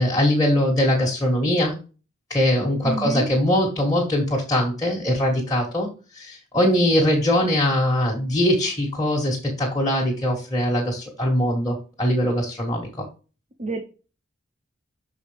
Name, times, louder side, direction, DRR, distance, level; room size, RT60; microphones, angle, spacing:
voice 1, 0.0-1.8 2.3-5.9 6.1-13.0, left 1 dB, 15° left, -3 dB, 1.6 m, -21 dB
voice 2, 2.8-3.3 13.6-13.8, right 2 dB, 35° right, 1 dB, 0.8 m, -28 dB
6.6 x 4.9 x 3.3 m, 0.33 s
head